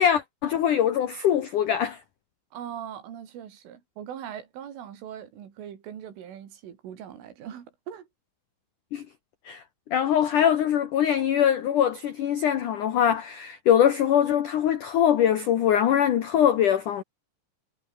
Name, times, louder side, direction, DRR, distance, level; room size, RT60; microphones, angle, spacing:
voice 1, 0.0-2.0 8.9-9.0 9.5-9.6 9.9-17.0, left 9 dB, 80° left, 1.8 m, -22 dB
voice 2, 2.5-8.1, right 9 dB, 75° right, 5.6 m, -40 dB
omnidirectional pair, 5.7 m